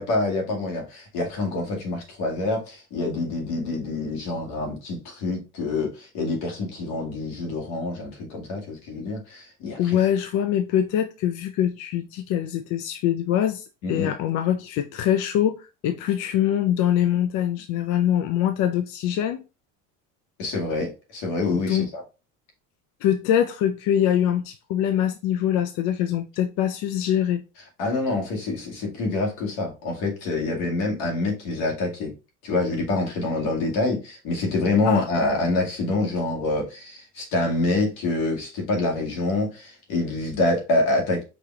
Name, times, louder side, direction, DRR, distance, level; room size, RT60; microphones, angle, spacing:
voice 1, 0.0-10.0 13.8-14.1 20.4-22.0 27.8-32.1 32.4-41.2, left 2 dB, 80° left, 2.1 m, -26 dB
voice 2, 9.8-19.4 21.5-21.9 23.0-27.4 34.9-35.0, left 10 dB, 50° left, 0.4 m, -23 dB
5.0 x 2.9 x 3.4 m
cardioid pair, 165°, 37 cm